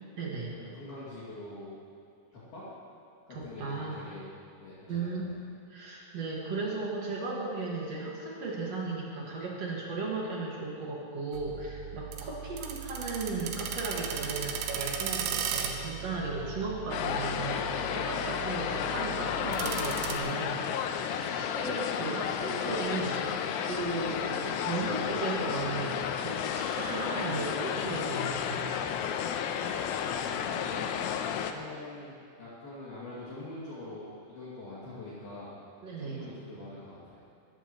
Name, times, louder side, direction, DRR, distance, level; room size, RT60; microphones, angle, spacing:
voice 1, 0.2-0.5 3.3-4.0 4.9-5.3 5.7-28.7 35.8-36.3, right 3 dB, 55° right, -4 dB, 1.9 m, -36 dB
voice 2, 0.7-1.8 2.5-2.6 3.3-4.3 4.6-5.2 30.0-32.1 32.4-35.5 36.0-37.2, left 2 dB, 55° left, -9 dB, 4.0 m, -44 dB
sound 1, 11.3-20.2, right 8 dB, 80° right, 3.4 m, -37 dB
sound 2, 16.9-31.5, left 8 dB, 85° left, 3.3 m, -32 dB
22.0 x 14.0 x 3.1 m, 2.6 s
omnidirectional pair, 5.6 m